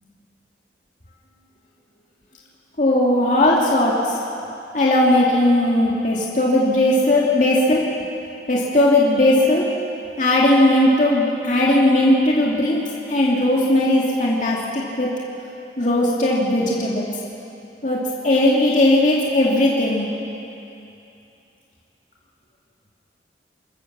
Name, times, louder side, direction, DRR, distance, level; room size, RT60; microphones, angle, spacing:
voice 1, 2.8-4.2 4.7-7.8 8.5-9.6 10.2-12.8 13.1-15.1 15.8-17.1 17.8-20.1, left 1 dB, 45° left, -5 dB, 2.6 m, -18 dB
26.5 x 13.5 x 7.4 m, 2.8 s
head